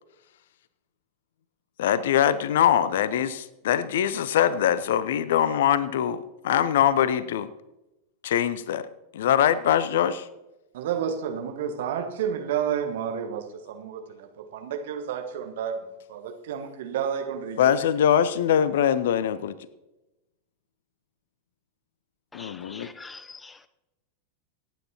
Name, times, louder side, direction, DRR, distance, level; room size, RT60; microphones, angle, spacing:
voice 1, 1.8-7.5 8.2-8.9 9.1-10.3 17.6-19.6 22.3-22.9, left 9 dB, 60° left, 0.6 m, -23 dB
voice 2, 10.7-15.8 16.1-17.7, right 8 dB, 55° right, 1.3 m, -30 dB
voice 3, 22.3-23.7, left 3 dB, 10° left, 0.5 m, -44 dB
25.0 x 9.1 x 2.9 m
figure-of-eight pair, 90°, 0 cm